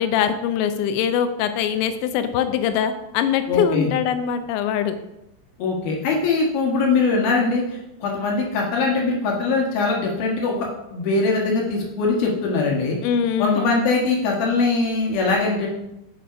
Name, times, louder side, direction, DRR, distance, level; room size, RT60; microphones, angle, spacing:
voice 1, 0.0-5.0 13.0-13.7, left 8 dB, 85° left, 9 dB, 3.1 m, -22 dB
voice 2, 3.5-3.9 5.6-13.0 13.4-15.7, left 3 dB, 65° left, -1 dB, 3.0 m, -22 dB
9.0 x 6.0 x 5.1 m, 0.90 s
omnidirectional pair, 5.1 m